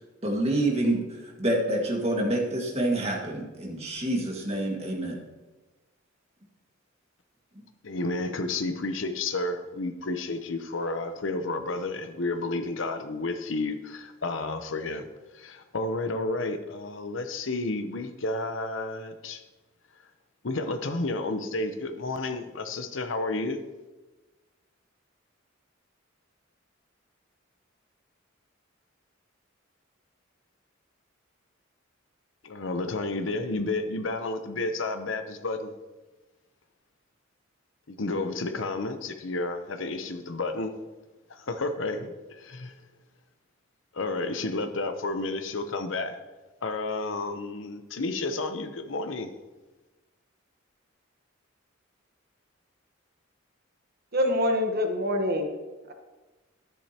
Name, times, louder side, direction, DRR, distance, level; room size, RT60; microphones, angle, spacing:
voice 1, 0.2-5.2, right 1 dB, 30° right, 0 dB, 1.8 m, -27 dB
voice 2, 7.8-15.0 15.3-19.4 20.4-23.6 32.4-35.7 37.9-40.7 41.3-42.7 43.9-46.2 46.6-49.3, left 2 dB, 70° left, 9 dB, 0.8 m, -31 dB
voice 3, 54.1-55.5 55.9-56.0, left 1 dB, 50° right, 5 dB, 1.1 m, -25 dB
12.0 x 10.0 x 2.9 m, 1.2 s
head